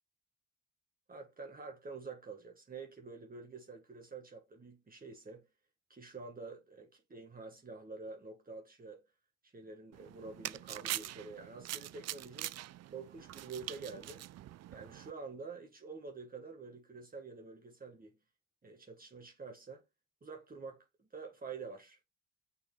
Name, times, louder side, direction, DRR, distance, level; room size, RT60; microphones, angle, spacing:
voice 1, 1.1-5.5 5.9-9.0 9.4-12.5 12.9-14.2 14.7-18.2 18.6-19.8 20.2-22.0, right 4 dB, 30° right, 1.5 m, -48 dB
sound 1, 9.9-15.1, right 14 dB, 60° right, 0.5 m, -44 dB
6.7 x 4.2 x 3.3 m
cardioid pair, 90°, 30 cm